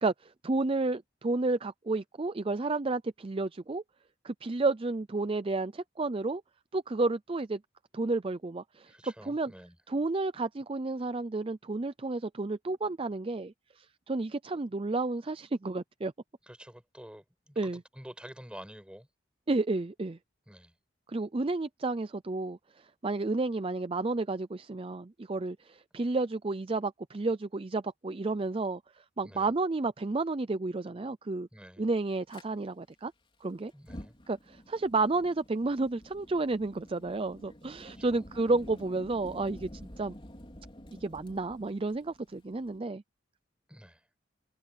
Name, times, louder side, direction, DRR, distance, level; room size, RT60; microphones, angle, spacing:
voice 1, 0.0-3.8 4.2-6.4 6.7-7.6 7.9-8.9 9.3-9.5 9.9-16.1 17.6-17.8 19.5-20.2 21.1-22.6 23.0-28.8 29.2-31.5 31.8-33.1 33.4-33.7 34.3-39.7 40.0-40.1 41.0-43.0, right 3 dB, 30° right, 0.5 m, -31 dB
voice 2, 8.9-9.8 16.4-19.1 20.5-20.8 29.2-29.5 31.5-31.9 33.7-34.2 37.6-38.3 43.7-44.1, equal, 5° right, 5.2 m, -49 dB
Fire, 32.3-32.4 33.7-42.8, equal, 30° left, 4.1 m, -49 dB
head